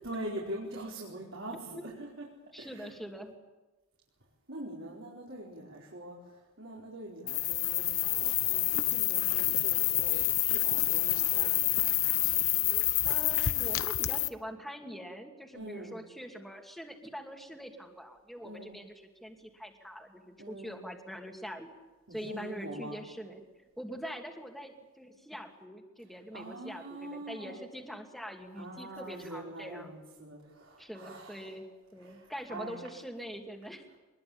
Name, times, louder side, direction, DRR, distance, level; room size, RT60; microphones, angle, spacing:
voice 1, 0.0-2.3 2.6-2.9 4.5-12.3 15.5-16.0 18.4-18.8 20.4-20.8 22.1-23.0 26.3-27.6 28.6-31.6 32.0-32.8, right 1 dB, 60° right, -3 dB, 4.7 m, -44 dB
voice 2, 2.5-3.3 13.0-18.9 19.2-21.7 22.1-23.4 23.8-29.9 30.8-31.7 31.9-33.8, equal, ahead, 3 dB, 2.6 m, -43 dB
sound 1, 7.3-14.3, left 16 dB, 70° left, 0.9 m, -28 dB
24.5 x 21.5 x 8.8 m, 1.2 s
head